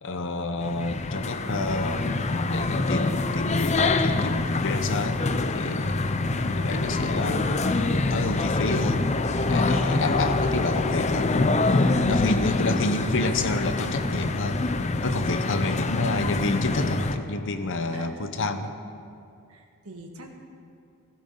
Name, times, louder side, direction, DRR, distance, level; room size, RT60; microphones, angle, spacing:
voice 1, 0.0-2.2 2.5-6.1 6.6-7.5 8.1-9.1 9.4-11.4 12.1-14.6 15.0-18.7, left 2 dB, 60° left, 8 dB, 0.9 m, -29 dB
sound 1, 0.6-17.2, left 2 dB, 30° left, 0.6 m, -25 dB
voice 2, 6.2-7.6 15.7-16.5 17.9-18.1 19.5-20.3, right 1 dB, 80° right, 2 dB, 1.7 m, -44 dB
16.0 x 15.5 x 3.9 m, 2.5 s
head